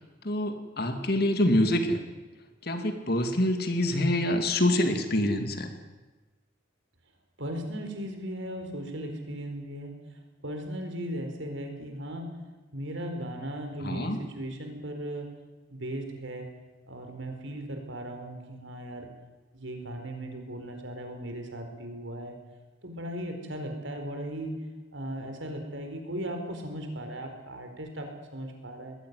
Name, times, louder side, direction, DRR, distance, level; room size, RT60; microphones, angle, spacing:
voice 1, 0.2-2.0 2.6-5.7 13.8-14.2, left 1 dB, 50° left, 6 dB, 2.4 m, -26 dB
voice 2, 7.4-9.9 10.4-12.3 12.7-15.3 15.7-16.5 16.9-19.1 19.5-22.4 22.8-24.5 24.9-29.0, right 1 dB, 70° right, 4 dB, 4.5 m, -37 dB
20.5 x 16.0 x 9.6 m, 1.2 s
head